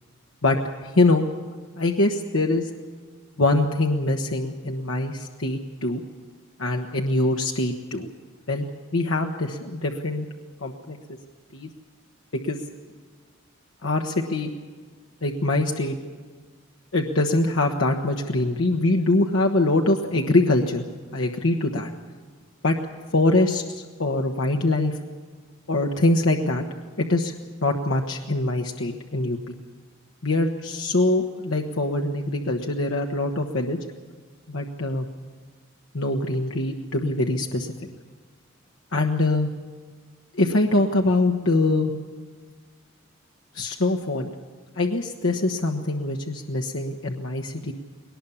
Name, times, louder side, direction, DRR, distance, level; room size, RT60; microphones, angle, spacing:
voice 1, 0.4-1.2 1.8-2.7 3.4-6.0 6.6-8.1 8.5-8.7 8.9-10.3 10.6-11.0 11.5-11.7 12.3-12.6 13.8-14.5 15.2-16.0 16.9-20.8 21.1-21.9 22.6-22.7 23.1-25.0 25.7-26.6 27.0-27.3 27.6-29.5 30.2-33.8 34.5-35.1 35.9-37.7 38.9-39.5 40.3-41.9 43.5-44.3 44.8-47.7, left 2 dB, 70° left, 1 dB, 1.2 m, -23 dB
21.5 x 19.0 x 7.2 m, 1.5 s
head